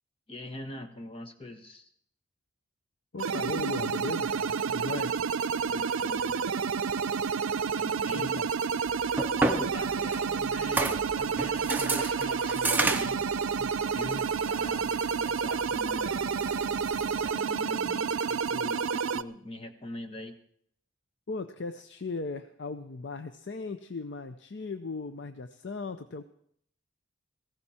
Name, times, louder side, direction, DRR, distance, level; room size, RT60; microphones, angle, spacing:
voice 1, 0.3-1.9 5.6-6.4 7.7-8.4 9.4-13.2 13.5-16.2 17.1-20.3, left 1 dB, 25° left, 6 dB, 1.2 m, -42 dB
voice 2, 3.1-5.1 8.1-8.5 10.0-10.1 21.3-26.2, left 3 dB, 55° left, 10 dB, 0.6 m, -37 dB
sound 1, 3.2-19.2, right 6 dB, 85° right, 0.5 m, -30 dB
sound 2, 5.4-18.8, equal, 85° left, 6.7 m, -60 dB
sound 3, 8.9-17.3, right 3 dB, 10° right, 0.6 m, -34 dB
16.5 x 15.0 x 4.3 m, 0.66 s
head